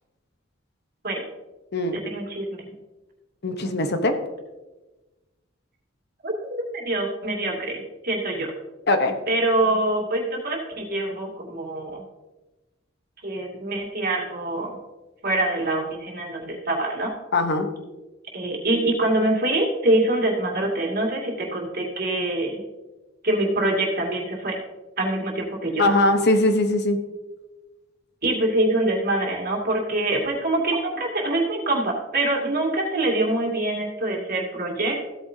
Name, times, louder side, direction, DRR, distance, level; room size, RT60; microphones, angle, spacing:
voice 1, 1.9-2.7 6.2-8.5 9.3-12.0 13.2-14.8 15.2-17.1 18.3-22.6 23.2-24.6 25.0-25.9 28.2-35.0, right 2 dB, 50° right, 0 dB, 2.4 m, -25 dB
voice 2, 3.4-4.1 8.9-9.2 17.3-17.7 25.8-27.0, left 2 dB, 55° left, 7 dB, 1.0 m, -21 dB
15.5 x 8.8 x 2.8 m, 1.1 s
head